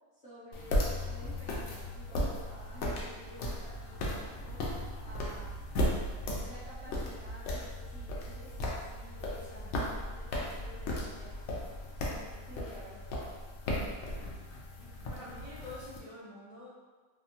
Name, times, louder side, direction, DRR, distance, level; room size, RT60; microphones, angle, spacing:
voice 1, 0.1-4.6 5.0-5.6 6.4-11.4 12.0-13.0, equal, 25° left, -11 dB, 1.0 m, -51 dB
sound 1, 0.5-16.0, left 1 dB, 65° left, 0.8 m, -36 dB
voice 2, 14.8-16.7, left 2 dB, 85° left, -10 dB, 0.3 m, -48 dB
2.7 x 2.2 x 2.8 m, 1.4 s
omnidirectional pair, 1.5 m